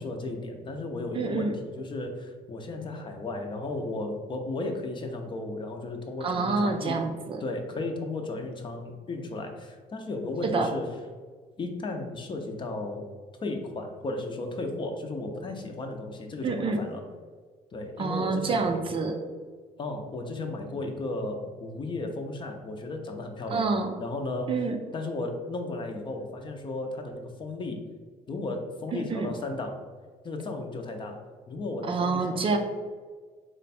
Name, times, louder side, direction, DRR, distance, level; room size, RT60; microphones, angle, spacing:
voice 1, 0.0-7.0 7.4-10.9 11.6-13.1 13.4-17.0 17.7-18.8 19.8-23.7 24.0-24.5 24.9-27.8 28.3-29.8 30.2-31.2 31.5-32.6, left 2 dB, 35° left, 3 dB, 0.6 m, -34 dB
voice 2, 1.2-1.5 6.2-7.4 10.4-10.7 16.4-16.8 18.0-19.2 23.5-23.9 24.5-24.8 28.9-29.3 31.9-32.6, right 4 dB, 35° right, 4 dB, 0.5 m, -27 dB
4.5 x 2.2 x 4.1 m, 1.5 s
cardioid pair, 110°, 15 cm